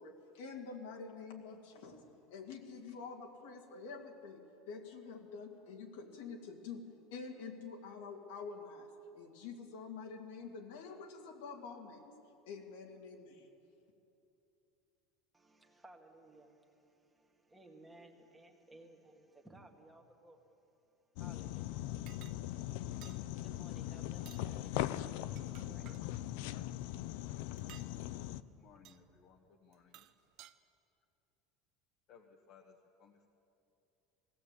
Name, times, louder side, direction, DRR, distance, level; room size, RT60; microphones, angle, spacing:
voice 1, 0.0-12.1 12.5-13.5, left 5 dB, 80° left, 1 dB, 2.3 m, -47 dB
voice 2, 15.3-20.6 21.2-22.0 22.9-27.7 27.9-28.6, right 1 dB, 5° right, 2 dB, 1.8 m, -61 dB
sound 1, 21.2-28.4, left 14 dB, 65° left, 0.6 m, -40 dB
sound 2, 22.1-22.4 23.0-23.2 24.1-24.5 25.1-26.0 27.6-27.9 28.8-29.0 29.7-30.5, right 14 dB, 45° right, 0.7 m, -57 dB
voice 3, 28.4-30.1 32.1-33.3, left 6 dB, 40° left, 1 dB, 1.3 m, -62 dB
20.5 x 16.5 x 8.4 m, 2.8 s
cardioid pair, 165°, 0 cm